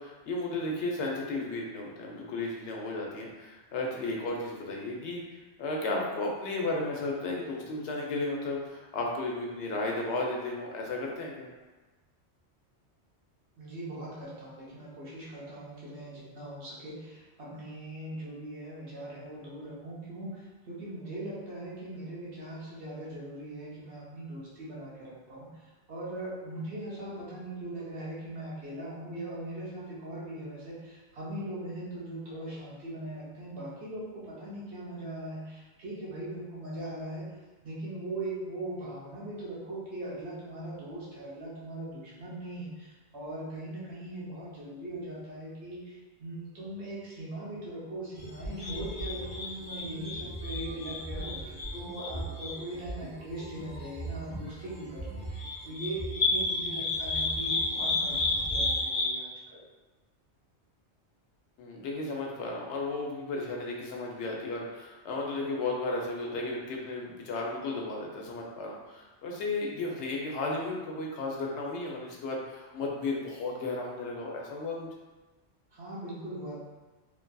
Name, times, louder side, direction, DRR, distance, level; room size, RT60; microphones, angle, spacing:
voice 1, 0.0-11.5 61.6-74.9, left 2 dB, 85° left, -1 dB, 0.9 m, -34 dB
voice 2, 13.6-25.5 25.9-37.3 37.6-59.6 75.7-76.6, right 1 dB, 75° right, -7 dB, 1.1 m, -40 dB
sound 1, 48.2-59.0, left 2 dB, 10° left, 0.8 m, -32 dB
3.1 x 2.6 x 2.2 m, 1.2 s
omnidirectional pair, 1.1 m